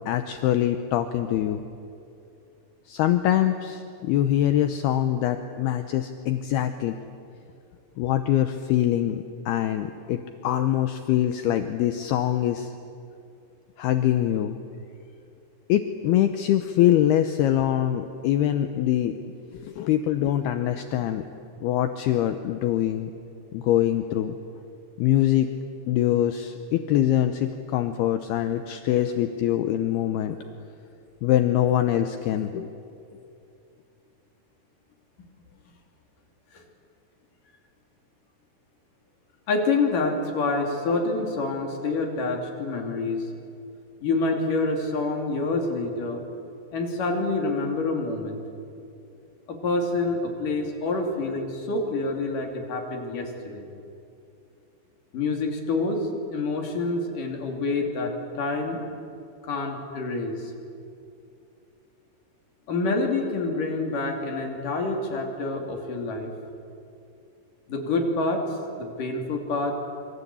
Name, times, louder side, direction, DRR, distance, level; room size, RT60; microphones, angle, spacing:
voice 1, 0.0-1.6 2.9-7.0 8.0-12.7 13.8-14.6 15.7-19.1 19.5-21.2 21.6-23.1 23.5-24.4 25.0-25.5 25.9-30.4 31.2-32.7, left 12 dB, 75° left, 8 dB, 2.5 m, -24 dB
voice 2, 39.5-43.3 44.0-46.2 46.7-48.4 49.5-53.7 55.1-58.8 59.4-60.5 62.7-66.3 67.7-68.4 68.8-69.7, left 3 dB, 50° left, 2 dB, 4.1 m, -27 dB
27.0 x 25.0 x 8.5 m, 2.6 s
omnidirectional pair, 5.4 m